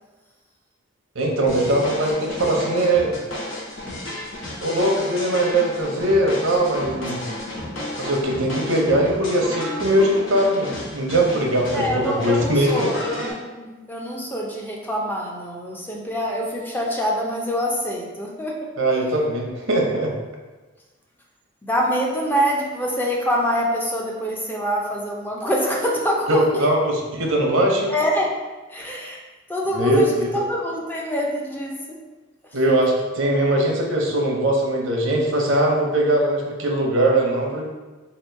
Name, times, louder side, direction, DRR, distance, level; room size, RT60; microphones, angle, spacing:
voice 1, 1.2-3.1 4.6-7.2 8.0-12.9 18.8-20.1 26.3-27.9 29.7-30.3 32.5-37.7, right 1 dB, 80° right, 0 dB, 0.8 m, -21 dB
sound 1, 1.5-13.3, left 1 dB, 70° left, 0.9 m, -32 dB
voice 2, 11.7-18.6 21.6-26.7 27.9-28.3 28.7-29.2 29.5-32.0, equal, 10° left, -2 dB, 0.5 m, -25 dB
2.9 x 2.9 x 4.4 m, 1.2 s
head